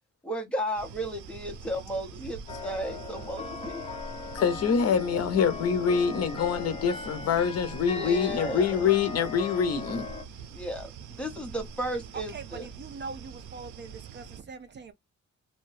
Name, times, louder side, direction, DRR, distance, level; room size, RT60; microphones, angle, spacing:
voice 1, 0.2-4.0 7.8-8.9 10.5-12.6, equal, 5° left, 0.9 m, -34 dB
sound 1, 0.8-14.4, right 6 dB, 90° right, 0.5 m, -44 dB
sound 2, 2.5-10.2, left 5 dB, 20° left, 0.5 m, -39 dB
voice 2, 4.3-10.0, left 6 dB, 60° left, 0.7 m, -25 dB
voice 3, 12.1-14.9, right 4 dB, 40° right, 0.4 m, -42 dB
2.7 x 2.2 x 3.1 m
cardioid pair, 150°, 29 cm